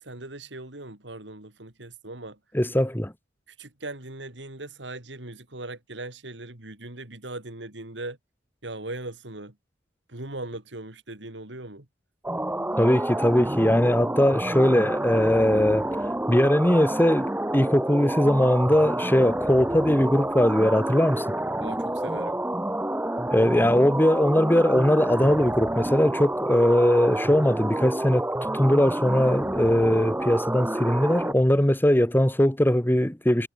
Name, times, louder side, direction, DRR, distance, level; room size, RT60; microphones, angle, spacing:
voice 1, 0.0-2.4 3.5-8.2 8.6-9.6 10.1-11.9 21.6-22.4, right 2 dB, 90° right, 3.7 m, -39 dB
voice 2, 2.5-3.1 12.8-15.9 16.3-21.2 23.3-28.3 28.6-33.5, left 1 dB, 10° left, 1.5 m, -20 dB
sound 1, 12.2-31.3, right 1 dB, 10° right, 1.2 m, -29 dB
head